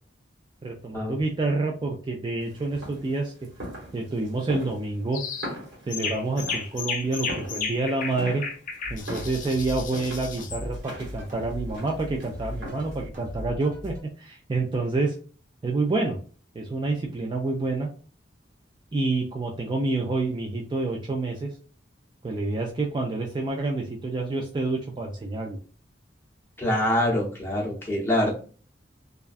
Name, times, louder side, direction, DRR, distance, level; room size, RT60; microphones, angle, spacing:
voice 1, 0.6-3.3 3.9-5.2 5.9-8.4 8.9-15.1 15.6-16.2 16.5-17.9 18.9-21.5 22.2-25.6, right 3 dB, 25° right, 0 dB, 0.3 m, -28 dB
sound 1, 2.4-13.1, equal, 85° right, 1.2 m, -41 dB
sound 2, 5.1-5.5 5.9-10.6, left 5 dB, 45° left, 0.5 m, -33 dB
sound 3, 8.8-14.0, left 1 dB, 45° right, 0.8 m, -38 dB
voice 2, 26.6-28.3, left 1 dB, 15° left, -3 dB, 0.8 m, -24 dB
2.4 x 2.2 x 2.4 m, 0.39 s
head